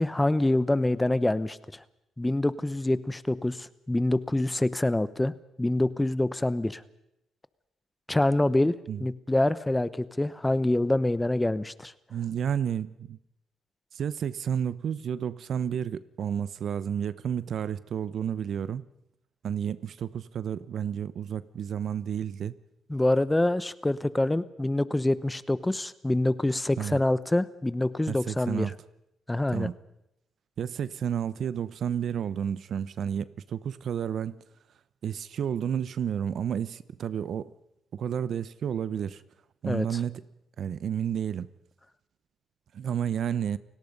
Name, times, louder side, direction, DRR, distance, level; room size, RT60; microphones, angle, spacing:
voice 1, 0.0-1.6 2.2-5.3 5.6-6.8 8.1-8.7 9.0-11.9 22.9-28.7 29.3-29.7 39.7-40.0, left 1 dB, 10° left, 1.0 m, -26 dB
voice 2, 12.1-13.2 13.9-18.8 19.4-22.5 26.8-27.0 28.1-28.7 29.5-29.7 30.6-34.4 35.0-37.5 37.9-39.2 39.6-40.2 40.6-41.5 42.7-43.6, right 8 dB, 60° right, 0.8 m, -31 dB
30.0 x 18.0 x 5.4 m
cardioid pair, 90°, 0 cm